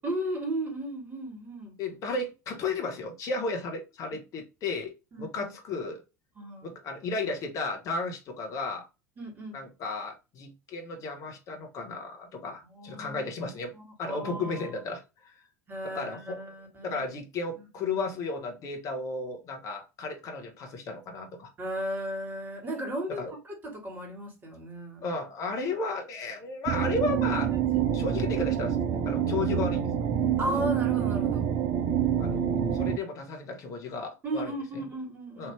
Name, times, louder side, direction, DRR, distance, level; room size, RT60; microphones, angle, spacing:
voice 1, 0.0-1.8 4.1-4.2 5.1-5.5 6.4-6.7 9.2-9.6 12.7-13.3 13.7-14.7 15.7-17.1 17.5-17.7 21.6-25.1 27.4-27.6 30.4-31.5 32.3-32.4 34.2-35.5, right 1 dB, 20° right, 1.8 m, -35 dB
voice 2, 1.8-4.9 5.2-6.0 6.6-8.8 9.5-13.7 14.0-15.4 15.8-16.4 16.8-21.5 23.1-23.3 25.0-27.5 27.9-28.8 29.0-29.8 32.2-34.5 35.4-35.5, left 3 dB, 40° left, 1.0 m, -34 dB
sound 1, 26.7-33.0, right 9 dB, 40° right, 0.5 m, -27 dB
3.3 x 2.6 x 3.2 m
figure-of-eight pair, 75°, 9 cm